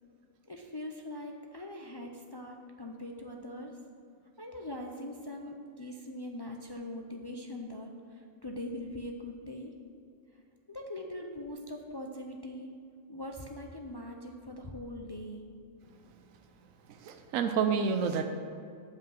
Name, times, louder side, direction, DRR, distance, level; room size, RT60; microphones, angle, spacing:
voice 1, 0.5-3.8 4.4-9.7 10.7-12.7 13.1-15.5, left 1 dB, 40° left, 1 dB, 0.3 m, -42 dB
voice 2, 16.9-18.3, right 6 dB, 85° right, 6 dB, 1.0 m, -29 dB
8.3 x 5.0 x 7.5 m, 2.4 s
omnidirectional pair, 1.3 m